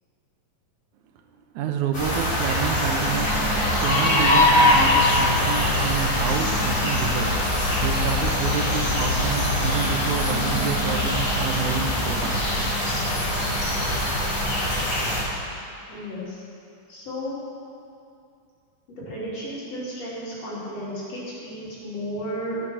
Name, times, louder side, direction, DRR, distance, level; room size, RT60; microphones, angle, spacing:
voice 1, 1.5-12.5, right 7 dB, 85° right, 4 dB, 2.3 m, -29 dB
sound 1, 1.9-15.2, left 1 dB, 35° left, 3.3 m, -23 dB
sound 2, 2.9-13.8, left 1 dB, 65° right, 2.2 m, -39 dB
sound 3, 3.2-10.6, left 7 dB, 75° left, 1.9 m, -35 dB
voice 2, 15.9-16.4 16.9-17.4 18.9-22.6, equal, 55° left, -7 dB, 4.0 m, -33 dB
13.5 x 7.6 x 6.2 m, 2.6 s
omnidirectional pair, 3.4 m